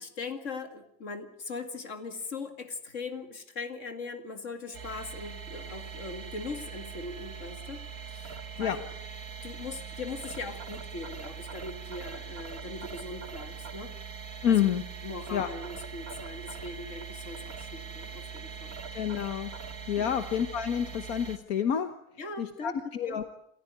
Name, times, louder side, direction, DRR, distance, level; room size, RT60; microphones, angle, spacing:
voice 1, 0.0-8.8 9.4-13.9 14.5-14.6 15.0-18.8 20.0-20.2 22.2-22.7 23.1-23.2, left 3 dB, 55° left, 8 dB, 2.6 m, -40 dB
sound 1, 4.7-21.4, right 6 dB, 70° right, 2.3 m, -42 dB
voice 2, 14.4-14.8 15.3-15.5 18.9-19.5 19.9-21.9 22.4-23.3, left 9 dB, 75° left, 9 dB, 1.6 m, -28 dB
28.5 x 14.5 x 9.5 m, 0.73 s
omnidirectional pair, 1.6 m